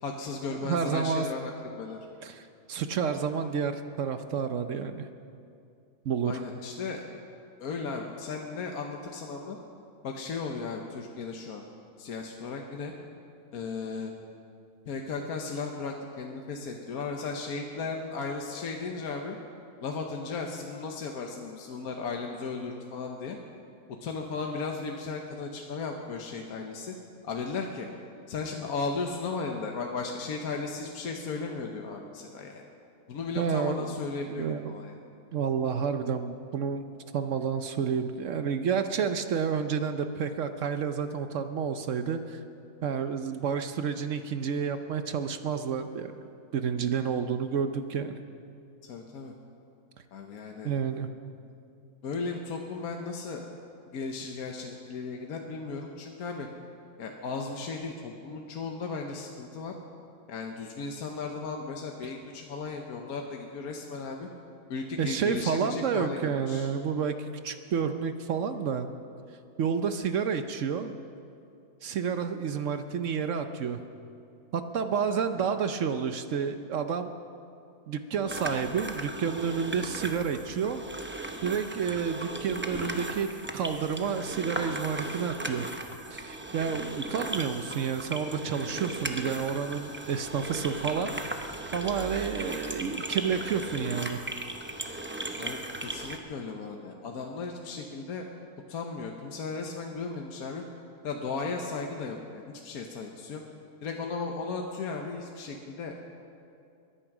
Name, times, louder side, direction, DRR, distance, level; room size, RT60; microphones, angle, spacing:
voice 1, 0.0-2.0 6.2-7.0 7.6-9.6 10.0-11.6 12.0-12.9 13.5-14.1 14.9-19.4 19.8-23.4 24.0-26.9 27.2-27.9 28.3-32.6 33.1-34.9 48.8-49.3 50.1-50.7 52.0-53.4 53.9-56.5 57.0-59.7 60.3-64.3 64.7-66.7 75.4-75.5 95.4-98.3 98.7-100.6 101.0-103.4 103.8-106.0, left 4 dB, 70° left, 2 dB, 1.4 m, -36 dB
voice 2, 0.5-1.3 2.2-5.1 6.0-6.4 33.4-33.9 34.3-34.8 35.3-36.8 37.1-42.4 42.8-46.1 46.5-48.1 50.6-51.1 62.0-62.1 65.0-68.9 69.6-70.9 71.8-73.8 74.5-77.1 77.9-80.8 81.4-85.7 86.1-91.1 91.7-94.2, right 6 dB, 60° right, 9 dB, 0.9 m, -30 dB
sound 1, 78.3-96.2, right 1 dB, 15° right, 0.4 m, -37 dB
22.0 x 10.0 x 6.0 m, 2.5 s
omnidirectional pair, 1.6 m